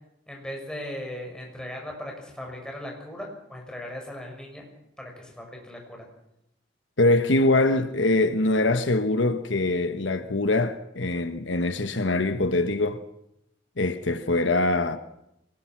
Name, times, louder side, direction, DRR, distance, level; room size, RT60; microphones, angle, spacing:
voice 1, 0.3-4.7 5.0-6.1, left 1 dB, 5° left, 6.1 m, -38 dB
voice 2, 7.0-13.0 13.8-15.0, left 2 dB, 85° left, 1.2 m, -23 dB
24.0 x 19.5 x 6.1 m
head